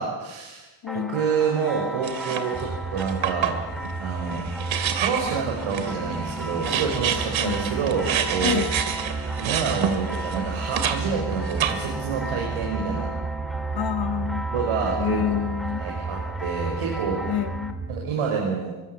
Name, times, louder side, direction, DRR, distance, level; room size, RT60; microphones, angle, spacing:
voice 1, 0.0-0.6 0.9-3.6 4.0-4.4 5.0-8.6 9.4-13.1 14.5-15.4 15.8-17.3 17.9-18.7, right 5 dB, 85° right, -1 dB, 6.3 m, -28 dB
voice 2, 0.8-1.2 7.4-7.7 8.4-8.7 13.7-14.5 15.0-15.8 17.3-17.7, left 10 dB, 50° left, 12 dB, 1.3 m, -27 dB
sound 1, 0.9-17.7, right 1 dB, ahead, 2.3 m, -37 dB
sound 2, 2.0-2.6 3.0-11.0 11.3-12.1, right 9 dB, 65° right, 2.6 m, -28 dB
sound 3, 2.5-18.1, right 3 dB, 35° right, 3.3 m, -33 dB
25.5 x 24.5 x 7.4 m, 1.1 s
cardioid pair, 145°, 49 cm